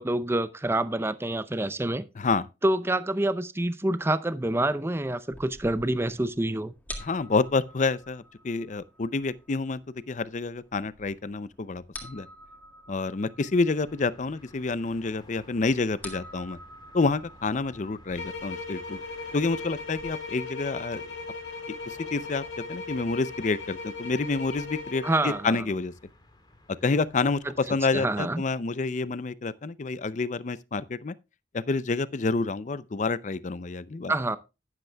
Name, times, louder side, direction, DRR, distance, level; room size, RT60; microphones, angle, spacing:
voice 1, 0.0-2.0 2.6-6.7 25.0-25.6 27.7-28.4 34.1-34.4, right 1 dB, 15° right, 0.6 m, -27 dB
voice 2, 2.2-2.5 7.0-9.8 10.1-12.3 12.9-16.6 16.9-19.0 19.3-21.0 21.9-22.4 22.7-25.9 26.8-31.1 31.5-34.1, left 3 dB, 45° left, 0.5 m, -28 dB
sound 1, 5.3-20.1, left 1 dB, 10° left, 1.8 m, -48 dB
sound 2, 13.7-28.2, left 1 dB, 25° left, 2.5 m, -54 dB
sound 3, 18.1-25.5, left 4 dB, 85° left, 2.7 m, -38 dB
12.0 x 10.5 x 2.3 m
head